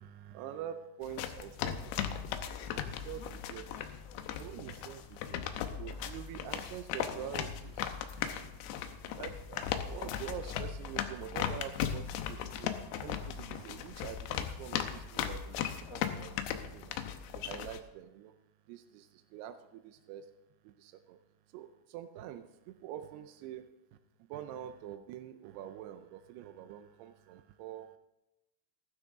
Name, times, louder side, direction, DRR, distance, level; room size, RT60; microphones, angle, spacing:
voice 1, 0.0-7.9 8.2-8.5 8.9-16.4 16.7-17.0 17.3-18.4 18.7-20.3 20.6-21.2 21.5-28.0, right 10 dB, 90° right, 8 dB, 2.7 m, -46 dB
sound 1, 1.0-17.8, left 9 dB, 90° left, 2.8 m, -37 dB
14.5 x 12.5 x 3.7 m, 0.95 s
omnidirectional pair, 4.6 m